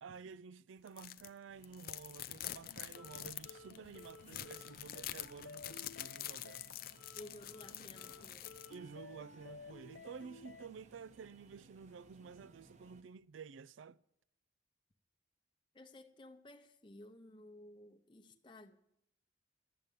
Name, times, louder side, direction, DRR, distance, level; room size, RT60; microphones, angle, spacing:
voice 1, 0.0-6.7 8.7-14.0, right 6 dB, 80° right, 0.4 m, -52 dB
sound 1, 0.9-1.3 1.6-8.7, left 12 dB, 50° left, 0.5 m, -46 dB
sound 2, 1.5-13.0, right 2 dB, 35° right, 0.8 m, -63 dB
sound 3, 2.7-10.7, left 4 dB, 70° left, 0.8 m, -56 dB
voice 2, 7.1-8.6 15.7-18.8, left 1 dB, 25° left, 0.8 m, -55 dB
12.0 x 8.1 x 9.1 m
head